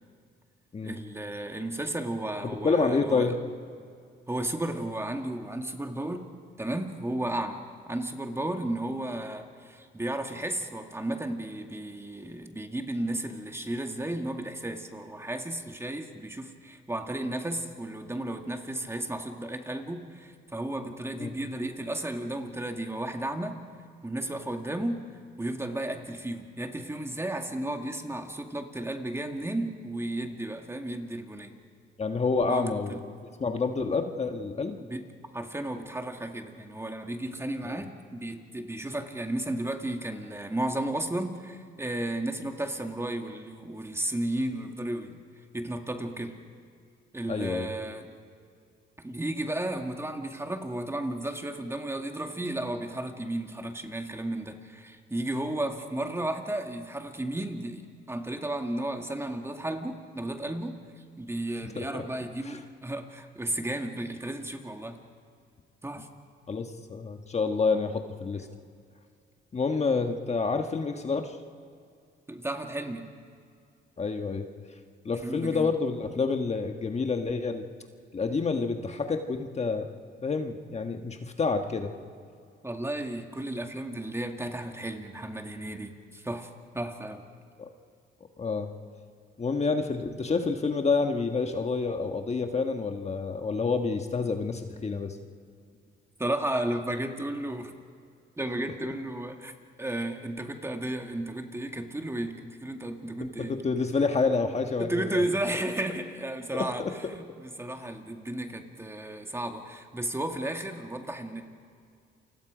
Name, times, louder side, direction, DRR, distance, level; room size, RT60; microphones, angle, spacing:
voice 1, 0.8-3.3 4.3-6.3 6.6-23.6 24.0-25.1 25.4-31.6 32.5-33.0 34.8-35.1 35.3-45.2 45.5-46.4 47.1-48.1 49.0-60.8 61.2-65.0 65.8-66.1 72.3-73.1 75.2-75.7 82.6-86.5 86.7-87.2 96.2-97.7 98.4-99.5 99.8-103.6 104.8-111.4, right 1 dB, 15° right, 4 dB, 2.1 m, -33 dB
voice 2, 2.4-3.3 21.2-21.4 32.0-34.8 37.6-37.8 47.3-47.7 61.6-62.0 62.4-62.6 66.5-68.5 69.5-71.4 74.0-74.4 75.0-77.6 78.1-79.9 80.2-81.9 87.6-87.7 88.4-88.7 89.4-95.2 103.2-105.3 106.5-106.9, left 4 dB, 35° left, 5 dB, 1.5 m, -28 dB
29.0 x 25.0 x 5.1 m, 2.3 s
cardioid pair, 90°, 20 cm